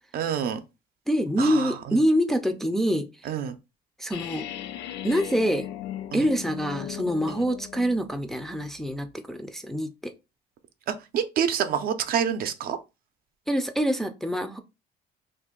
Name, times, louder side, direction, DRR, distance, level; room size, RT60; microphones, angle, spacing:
voice 1, 0.1-0.6 1.4-2.0 3.2-3.6 6.1-6.2 7.3-7.4 10.9-12.8, right 8 dB, 60° right, 0.5 m, -27 dB
voice 2, 1.1-3.1 4.0-4.5 5.0-5.7 6.1-10.1 13.5-14.6, equal, ahead, 0.4 m, -25 dB
sound 1, 4.1-8.1, left 11 dB, 85° left, 0.4 m, -37 dB
2.7 x 2.5 x 3.7 m
cardioid pair, 110°, 17 cm